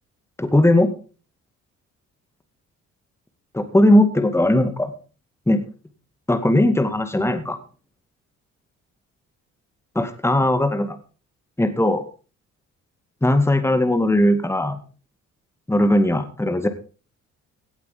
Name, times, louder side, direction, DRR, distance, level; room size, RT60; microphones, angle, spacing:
voice 1, 0.4-0.9 3.5-4.9 5.5-5.6 6.3-7.6 10.0-11.0 11.6-12.0 13.2-14.8 15.7-16.7, left 1 dB, 10° left, 9 dB, 2.1 m, -18 dB
17.0 x 8.1 x 5.2 m, 0.37 s
cardioid pair, 90°, 30 cm